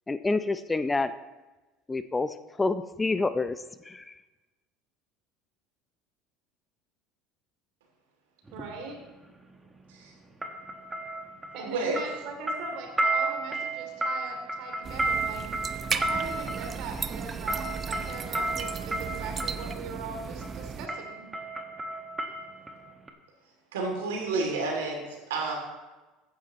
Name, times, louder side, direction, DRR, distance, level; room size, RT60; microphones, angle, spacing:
voice 1, 0.1-1.1 1.9-4.1, left 3 dB, 15° left, 12 dB, 0.5 m, -28 dB
sound 1, 8.5-8.7 10.4-11.7 12.0-19.7 20.4-20.6 20.9-22.8 23.1-23.2, right 2 dB, 15° right, 1.5 m, -32 dB
voice 2, 8.5-9.0 11.5-21.3, right 4 dB, 65° right, 2 dB, 3.0 m, -41 dB
voice 3, 11.6-12.0 23.7-25.0 25.3-25.5, right 3 dB, 85° right, 0 dB, 2.8 m, -30 dB
sound 2, 14.8-20.9, right 5 dB, 35° right, 0.7 m, -35 dB
14.5 x 9.4 x 3.1 m, 1.1 s
hypercardioid pair, 85°, 0 cm